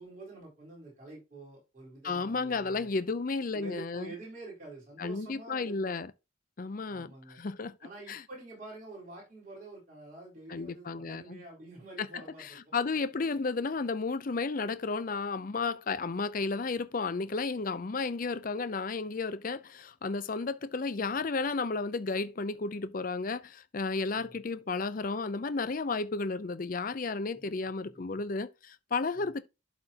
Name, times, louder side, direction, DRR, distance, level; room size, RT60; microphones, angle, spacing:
voice 1, 0.0-2.9 3.5-6.0 6.9-7.4 7.8-12.7 24.1-24.4 27.3-27.9 29.1-29.3, right 2 dB, 40° right, 4.1 m, -48 dB
voice 2, 2.0-4.1 5.0-6.1 6.6-7.7 8.1-8.2 10.5-11.4 12.0-12.1 12.4-29.4, left 4 dB, 40° left, 0.5 m, -33 dB
11.5 x 4.3 x 2.9 m
head